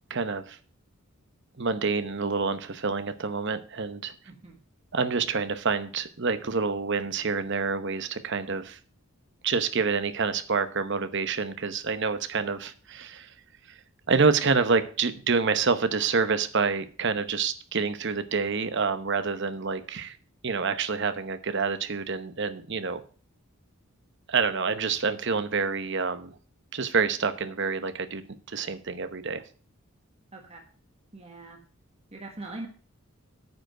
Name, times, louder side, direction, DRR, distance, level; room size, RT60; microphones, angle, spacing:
voice 1, 0.1-0.6 1.6-4.1 4.9-8.8 9.4-13.3 13.7-13.8 14.1-20.2 20.4-23.0 24.3-26.3 26.7-28.2 28.5-29.4, right 5 dB, 55° right, 11 dB, 0.9 m, -27 dB
voice 2, 4.2-4.6 30.3-30.6 31.1-31.6 32.1-32.7, right 2 dB, 30° right, 1 dB, 1.4 m, -41 dB
9.5 x 5.1 x 7.8 m, 0.41 s
head